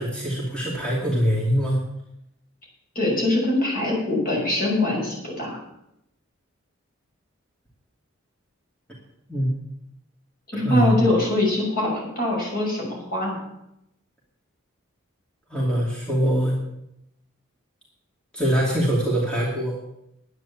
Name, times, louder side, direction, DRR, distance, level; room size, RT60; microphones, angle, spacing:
voice 1, 0.0-1.8 9.3-9.5 10.5-11.1 15.5-16.6 18.3-19.8, equal, 5° left, -4 dB, 2.6 m, -23 dB
voice 2, 2.9-5.6 10.5-13.4, left 1 dB, 45° left, -2 dB, 5.9 m, -23 dB
11.0 x 9.3 x 7.3 m, 0.81 s
head